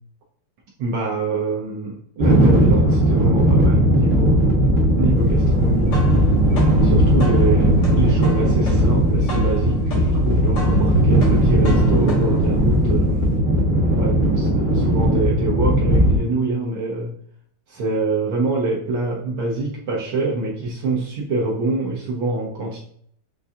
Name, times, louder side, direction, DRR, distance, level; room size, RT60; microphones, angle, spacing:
voice 1, 0.8-4.5 5.0-6.0 6.8-13.3 13.9-17.1 17.7-22.8, right 3 dB, 85° right, -4 dB, 1.1 m, -25 dB
sound 1, 2.2-16.2, right 1 dB, 30° right, 0.5 m, -17 dB
sound 2, 5.6-13.3, left 1 dB, 55° left, 2.1 m, -31 dB
6.9 x 2.6 x 2.3 m, 0.62 s
omnidirectional pair, 3.3 m